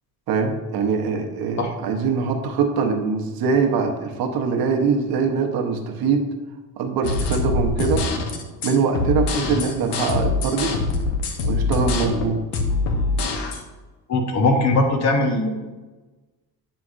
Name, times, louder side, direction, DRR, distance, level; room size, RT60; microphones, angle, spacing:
voice 1, 0.3-6.3 6.8-8.1 8.6-10.7 11.4-12.6, right 5 dB, 55° right, 3 dB, 0.9 m, -23 dB
sound 1, 7.0-13.6, left 3 dB, 75° left, 0.9 m, -24 dB
voice 2, 14.1-15.5, left 2 dB, 40° left, 4 dB, 0.8 m, -19 dB
7.9 x 5.0 x 2.5 m, 1.2 s
cardioid pair, 130°, 42 cm